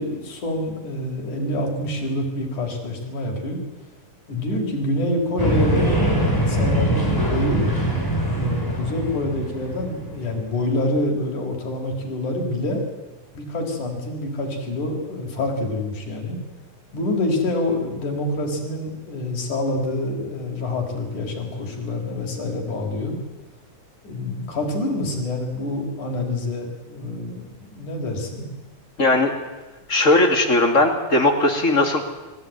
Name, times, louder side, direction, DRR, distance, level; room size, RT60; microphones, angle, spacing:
voice 1, 0.0-3.6 4.3-7.7 8.3-12.8 13.3-16.4 16.9-23.2 24.0-28.5, left 1 dB, 75° left, 1 dB, 5.9 m, -26 dB
sound 1, 5.4-10.7, right 1 dB, 5° left, 5.7 m, -22 dB
voice 2, 29.0-29.3 29.9-32.1, left 2 dB, 25° left, 4 dB, 2.6 m, -18 dB
29.5 x 15.5 x 9.3 m, 1.2 s
omnidirectional pair, 3.6 m